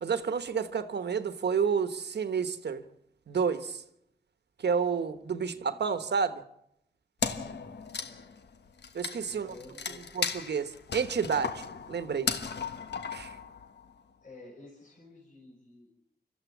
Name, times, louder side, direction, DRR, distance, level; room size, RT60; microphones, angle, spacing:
voice 1, 0.0-2.8 3.3-3.8 4.6-6.4 8.9-9.5 10.1-12.3 13.1-13.3, right 6 dB, 80° right, 1.2 m, -30 dB
voice 2, 5.5-5.8 8.0-8.3 9.3-10.1 14.2-15.9, left 2 dB, 55° left, 5.8 m, -52 dB
Wood, 7.2-13.9, left 5 dB, 85° left, 1.2 m, -36 dB
26.0 x 14.0 x 7.3 m
wide cardioid pair, 95°, 17 cm